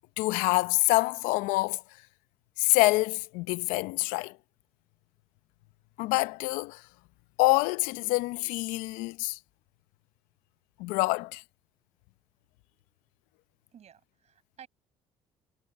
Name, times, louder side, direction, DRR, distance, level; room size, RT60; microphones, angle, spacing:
voice 1, 0.2-1.8 2.6-4.4 6.0-6.9 7.4-9.4 10.8-11.4, left 22 dB, 80° left, 0.8 m, -26 dB
voice 2, 13.7-14.7, right 9 dB, 55° right, 6.8 m, -53 dB
supercardioid pair, 65°, 14 cm